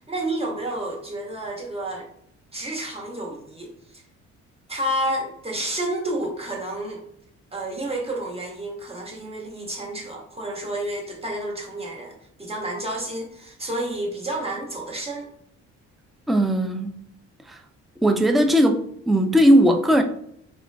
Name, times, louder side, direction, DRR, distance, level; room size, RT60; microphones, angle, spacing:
voice 1, 0.1-2.1 2.5-4.0 4.7-7.0 7.5-15.3, right 1 dB, 20° right, 1.2 m, -30 dB
voice 2, 16.3-17.0 17.5-17.6 18.0-20.0, equal, ahead, 0.3 m, -18 dB
3.8 x 2.3 x 3.2 m
cardioid pair, 90°, 30 cm